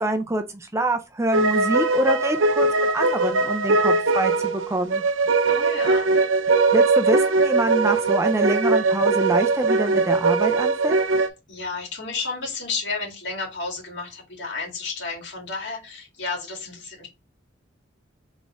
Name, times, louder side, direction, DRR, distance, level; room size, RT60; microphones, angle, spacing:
voice 1, 0.0-5.0 6.7-11.0, right 1 dB, 15° right, 0.4 m, -26 dB
sound 1, 1.3-11.3, right 3 dB, 85° right, 0.7 m, -20 dB
voice 2, 5.5-6.1 11.5-17.1, left 4 dB, 60° left, 2.0 m, -32 dB
4.1 x 3.5 x 3.6 m
head